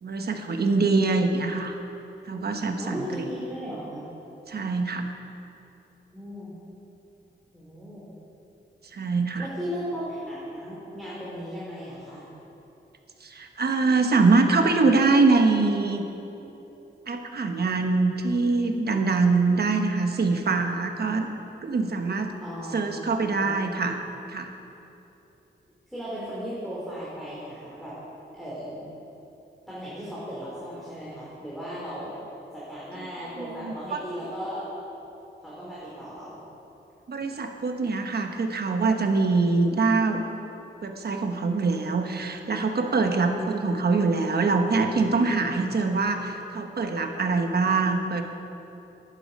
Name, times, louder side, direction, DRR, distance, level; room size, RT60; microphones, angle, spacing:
voice 1, 0.0-1.7 2.3-3.2 4.5-5.1 8.9-9.5 13.2-16.0 17.1-21.3 21.6-22.3 22.7-24.0 24.3-24.5 33.6-34.0 37.1-40.2 40.8-48.2, right 3 dB, 60° right, 5 dB, 1.1 m, -24 dB
voice 2, 2.8-4.1 6.1-6.5 7.5-8.1 9.4-12.2 22.4-23.7 25.9-27.9 28.3-28.8 29.7-32.1 32.5-34.6 35.4-36.4 43.2-43.5, equal, ahead, -9 dB, 3.2 m, -36 dB
11.5 x 11.0 x 5.3 m, 3.0 s
wide cardioid pair, 110°, 19 cm